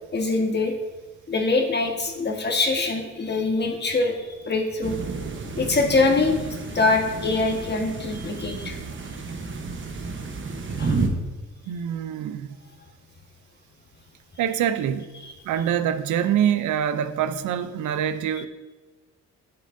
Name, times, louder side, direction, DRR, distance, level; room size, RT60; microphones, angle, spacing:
voice 1, 0.1-0.7 1.3-4.9 5.6-6.4 6.7-8.8 10.8-11.0 15.2-15.3, left 3 dB, 35° left, 1.4 m, -23 dB
sound 1, 4.8-11.1, right 4 dB, 40° right, 1.0 m, -31 dB
voice 2, 11.7-12.5 14.4-15.1 15.4-18.5, right 9 dB, 75° right, 0.6 m, -25 dB
8.9 x 7.6 x 2.6 m
cardioid pair, 90°, 30 cm